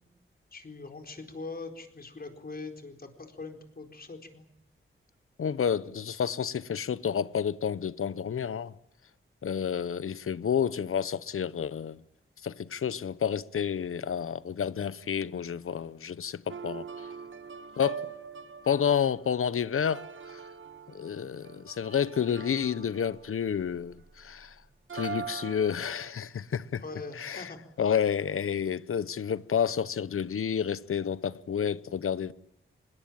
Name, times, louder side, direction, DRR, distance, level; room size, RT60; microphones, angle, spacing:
voice 1, 0.5-4.5 26.8-27.6, left 3 dB, 45° left, 4.3 m, -42 dB
voice 2, 5.4-8.7 9.4-12.0 12.4-17.1 17.8-18.1 18.7-20.4 20.9-24.6 24.9-26.8 27.2-27.5 27.8-32.3, left 8 dB, 90° left, 0.9 m, -30 dB
sound 1, 16.5-24.3 24.9-26.1, right 6 dB, 65° right, 1.5 m, -42 dB
25.5 x 21.0 x 8.7 m
wide cardioid pair, 125°, 21 cm